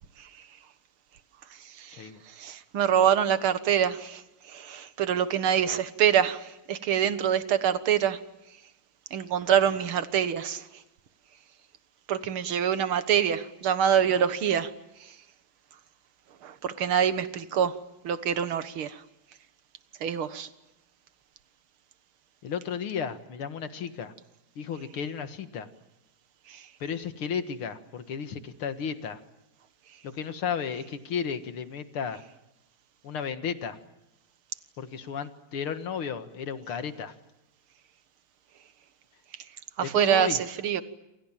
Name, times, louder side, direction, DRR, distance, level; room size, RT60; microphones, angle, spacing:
voice 1, 1.6-8.2 9.1-10.8 12.1-14.7 15.0-15.2 16.4-17.7 18.0-19.0 20.0-20.5 26.5-26.7 39.8-40.8, right 9 dB, 80° right, 2.2 m, -26 dB
voice 2, 22.4-24.1 24.6-25.7 26.8-29.2 30.0-32.2 33.0-33.8 34.8-37.1 39.8-40.4, left 7 dB, 90° left, 2.5 m, -33 dB
27.5 x 27.5 x 7.4 m
omnidirectional pair, 2.3 m